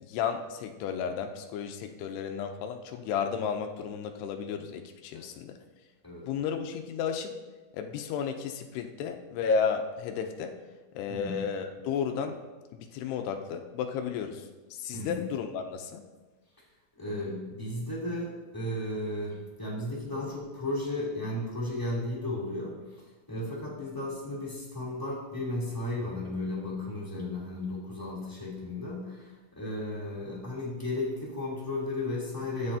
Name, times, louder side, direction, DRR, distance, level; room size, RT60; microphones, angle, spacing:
voice 1, 0.0-5.6 6.3-7.3 7.7-10.5 10.9-12.4 12.7-16.0, left 6 dB, 80° left, 5 dB, 2.5 m, -33 dB
voice 2, 6.0-6.4 11.1-11.4 14.9-15.2 17.0-23.0 23.3-32.8, left 1 dB, 5° left, -7 dB, 2.0 m, -34 dB
13.5 x 9.5 x 2.8 m, 1.3 s
omnidirectional pair, 5.1 m